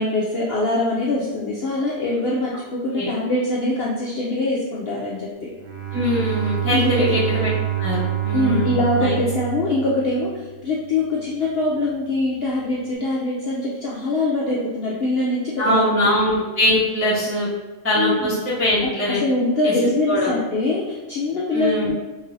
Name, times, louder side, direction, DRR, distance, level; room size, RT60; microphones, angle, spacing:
voice 1, 0.0-5.5 6.7-7.1 8.3-15.9 17.9-18.3 18.8-21.9, left 2 dB, 70° left, -5 dB, 0.5 m, -23 dB
Bowed string instrument, 5.6-10.5, right 12 dB, 55° right, 0.8 m, -26 dB
voice 2, 5.9-7.5 7.8-9.2 15.6-17.5 17.8-19.2 19.6-19.7 20.1-20.3 21.5-21.9, left 1 dB, 20° right, -8 dB, 0.3 m, -22 dB
2.9 x 2.5 x 3.1 m, 1.2 s
omnidirectional pair, 1.5 m